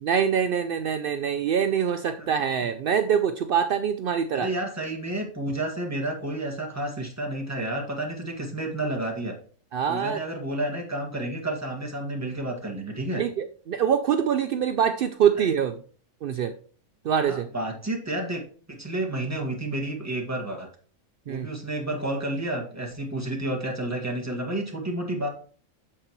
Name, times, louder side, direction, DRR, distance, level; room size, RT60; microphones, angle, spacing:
voice 1, 0.0-4.5 9.7-10.2 13.2-15.8 16.2-16.5 17.0-17.5 21.3-21.5, right 8 dB, 70° right, 8 dB, 0.5 m, -24 dB
voice 2, 4.3-9.4 9.9-13.2 15.4-15.5 17.3-20.7 21.3-25.3, right 1 dB, 10° right, -1 dB, 1.7 m, -30 dB
8.7 x 6.8 x 3.1 m, 0.43 s
omnidirectional pair, 1.5 m